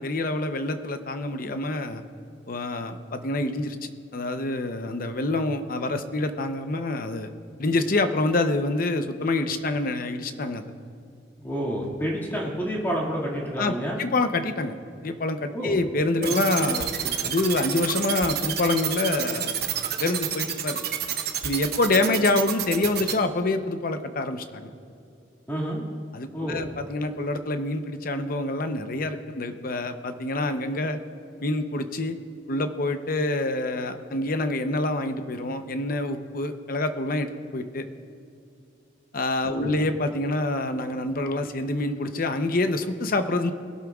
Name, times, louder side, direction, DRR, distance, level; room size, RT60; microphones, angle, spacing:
voice 1, 0.0-2.0 2.5-7.3 7.6-10.6 13.6-13.7 14.0-14.7 15.0-16.9 17.2-19.5 20.0-20.8 21.4-24.7 26.1-31.0 31.4-32.2 32.5-37.9 39.1-43.5, left 2 dB, 50° left, 8 dB, 0.7 m, -26 dB
voice 2, 11.4-14.0 15.5-15.7 16.2-16.3 17.2-17.3 25.5-25.9 26.3-26.7 39.5-39.7, equal, 10° left, -3 dB, 2.0 m, -29 dB
sound 1, 16.2-23.1, right 9 dB, 60° right, 0.9 m, -28 dB
20.5 x 12.0 x 2.4 m, 2.6 s
head